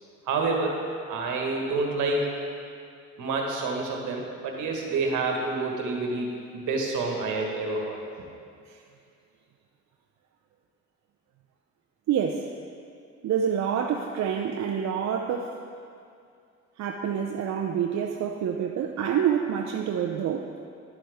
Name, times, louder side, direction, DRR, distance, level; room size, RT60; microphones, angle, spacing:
voice 1, 0.2-0.8 1.1-2.3 3.2-8.0, right 3 dB, 80° right, 0 dB, 1.5 m, -28 dB
voice 2, 12.1-12.5 13.2-15.6 16.8-20.5, right 8 dB, 65° right, 2 dB, 0.6 m, -27 dB
11.5 x 7.3 x 3.6 m, 2.4 s
cardioid pair, 90°, 30 cm